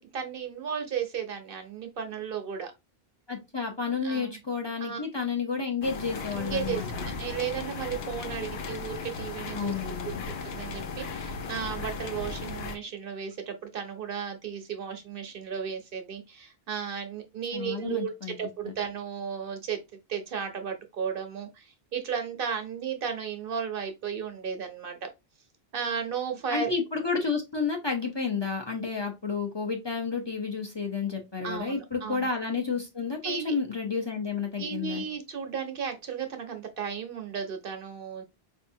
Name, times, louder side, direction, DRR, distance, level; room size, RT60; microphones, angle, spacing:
voice 1, 0.0-2.7 4.0-4.4 4.8-5.0 6.4-9.7 10.0-19.8 20.1-25.1 25.7-26.7 31.4-32.3 33.2-33.5 34.6-38.2, right 7 dB, 65° right, 0.9 m, -34 dB
voice 2, 3.3-7.1 9.5-10.2 17.5-18.4 18.6-18.7 26.5-35.0, left 5 dB, 30° left, 0.7 m, -31 dB
sound 1, 5.8-12.8, left 4 dB, 80° left, 0.9 m, -36 dB
4.5 x 2.7 x 2.6 m
omnidirectional pair, 1.0 m